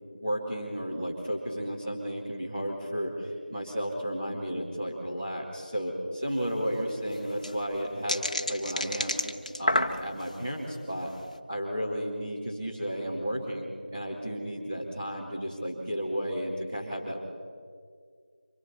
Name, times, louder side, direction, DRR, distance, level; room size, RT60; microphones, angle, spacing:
voice 1, 0.1-9.2 9.6-11.1 11.5-17.2, equal, 10° right, -6 dB, 2.4 m, -33 dB
sound 1, 6.3-6.4 6.6-6.7 7.1-10.4 10.9-11.2, left 1 dB, 45° left, 1.2 m, -30 dB
29.5 x 25.5 x 4.2 m, 2.1 s
figure-of-eight pair, 175°, 5 cm